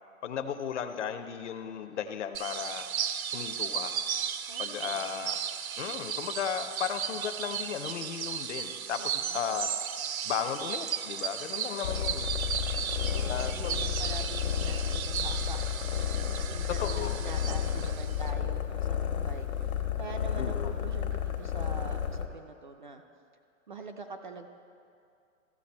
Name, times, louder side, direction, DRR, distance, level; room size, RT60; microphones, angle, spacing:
voice 1, 0.2-2.9 3.3-3.9 4.6-5.4 5.8-9.7 10.2-12.3 13.3-13.8 16.8-17.2 20.4-20.9, left 8 dB, 60° left, 9 dB, 0.7 m, -35 dB
sound 1, 2.3-18.3, right 8 dB, 80° right, 0.7 m, -35 dB
voice 2, 4.5-5.3 9.0-9.6 12.8-16.1 16.5-19.5 20.0-23.0 23.7-24.5, right 4 dB, 40° right, 5 dB, 0.4 m, -45 dB
sound 2, 11.8-22.3, left 9 dB, 85° left, 1.4 m, -32 dB
15.0 x 6.5 x 4.3 m, 2.4 s
hypercardioid pair, 170°, 41 cm